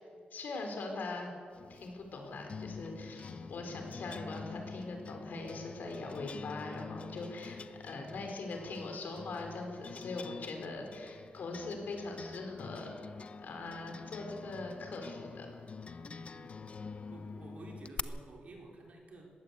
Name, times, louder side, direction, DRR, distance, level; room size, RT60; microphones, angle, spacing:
voice 1, 0.3-1.3 1.7-7.6 7.8-12.9 13.4-15.5, left 3 dB, 65° left, 3 dB, 4.4 m, -41 dB
sound 1, 1.5-18.0, left 5 dB, 40° left, 0.7 m, -46 dB
voice 2, 3.0-3.5 7.4-7.8 16.0-16.8 17.1-19.3, right 2 dB, 45° right, 0 dB, 4.1 m, -53 dB
20.5 x 16.5 x 8.3 m, 2.2 s
wide cardioid pair, 170°, 3 cm